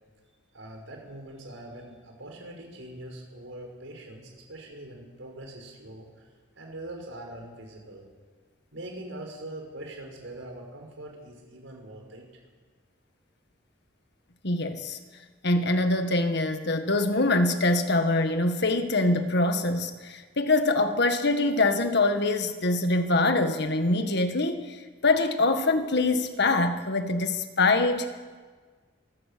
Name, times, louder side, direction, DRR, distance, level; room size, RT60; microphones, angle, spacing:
voice 1, 0.5-6.3 6.6-8.1 8.7-12.2, right 1 dB, 90° right, 1 dB, 5.7 m, -42 dB
voice 2, 14.4-15.0 15.4-28.1, left 2 dB, 60° left, 8 dB, 1.7 m, -24 dB
26.5 x 16.0 x 6.9 m, 1.5 s
head